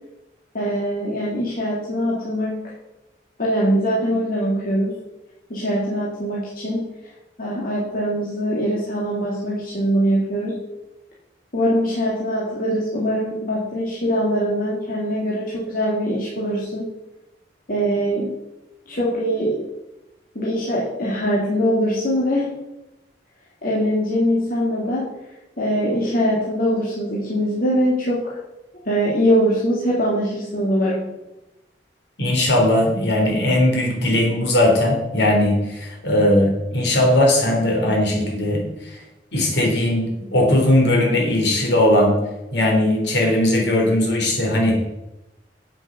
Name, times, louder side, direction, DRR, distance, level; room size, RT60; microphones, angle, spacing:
voice 1, 0.5-2.6 3.4-5.0 5.5-6.8 7.4-10.6 11.5-16.9 17.7-18.3 18.9-19.7 20.3-22.6 23.6-25.1 25.6-28.4 28.8-31.1, equal, 55° left, -6 dB, 2.3 m, -22 dB
voice 2, 32.2-39.0 39.3-42.2 42.5-44.8, left 1 dB, 70° left, 0 dB, 3.8 m, -18 dB
8.4 x 7.8 x 6.8 m, 0.96 s
head